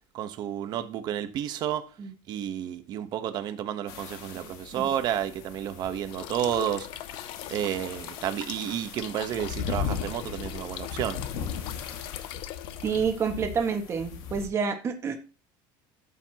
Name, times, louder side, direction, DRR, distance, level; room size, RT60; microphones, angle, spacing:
voice 1, 0.1-1.9 2.3-7.0 7.5-11.2, right 10 dB, 45° right, 1.1 m, -31 dB
sound 1, 3.9-14.5, left 7 dB, 80° left, 2.1 m, -38 dB
sound 2, 6.1-13.3, left 14 dB, 55° left, 0.7 m, -41 dB
voice 2, 12.8-15.2, right 6 dB, 25° right, 1.7 m, -28 dB
13.0 x 7.0 x 2.9 m
cardioid pair, 160°, 10 cm